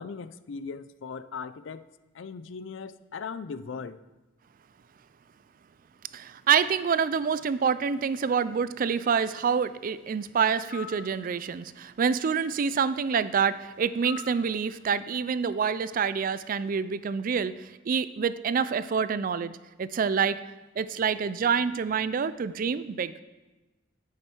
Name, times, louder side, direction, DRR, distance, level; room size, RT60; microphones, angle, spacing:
voice 1, 0.0-1.9 2.1-4.0, left 5 dB, 70° left, 14 dB, 0.4 m, -38 dB
voice 2, 6.1-19.5 19.8-20.4 20.8-23.1, right 6 dB, 45° right, 15 dB, 0.4 m, -27 dB
sound 1, 10.7-11.1 14.0-14.4, left 6 dB, 50° left, 1.0 m, -41 dB
10.5 x 8.4 x 4.5 m, 1.1 s
head